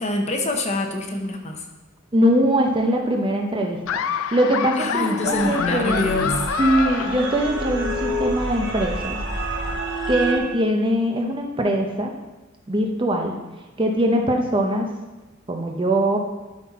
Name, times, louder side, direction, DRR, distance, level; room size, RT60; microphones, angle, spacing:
voice 1, 0.0-1.6 4.8-6.4, left 2 dB, 35° left, 3 dB, 0.8 m, -25 dB
voice 2, 2.1-3.8 4.1-6.1 6.6-9.2 10.1-12.1 12.7-13.4 13.8-14.9 15.5-16.2, right 1 dB, 25° right, 2 dB, 0.7 m, -22 dB
Laughter, 3.9-7.9, left 8 dB, 75° left, 0.4 m, -27 dB
sound 1, 5.2-10.4, right 1 dB, 60° right, 1.3 m, -28 dB
12.0 x 4.2 x 4.1 m, 1.1 s
head